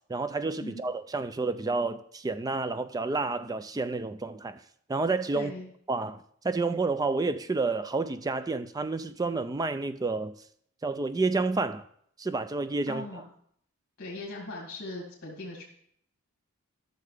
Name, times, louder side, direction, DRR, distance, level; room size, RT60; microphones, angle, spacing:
voice 1, 0.1-4.6 4.9-5.5 5.9-6.2 6.4-10.3 10.8-11.8 12.2-13.0, right 3 dB, 15° right, 0.3 m, -29 dB
voice 2, 5.3-5.7 12.9-13.2 14.0-15.6, left 2 dB, 50° left, 2.5 m, -39 dB
13.0 x 6.6 x 3.4 m
head